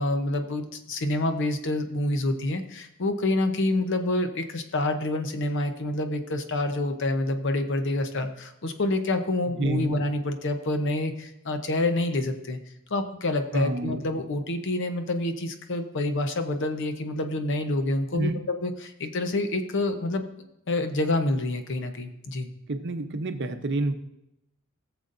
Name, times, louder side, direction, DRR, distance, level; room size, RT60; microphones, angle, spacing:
voice 1, 0.0-12.6 12.9-20.3 20.7-22.5, left 2 dB, 60° left, 7 dB, 0.8 m, -27 dB
voice 2, 13.5-14.0 18.1-18.4 22.7-23.9, right 2 dB, 55° right, 7 dB, 0.8 m, -28 dB
18.0 x 7.0 x 2.6 m, 0.84 s
head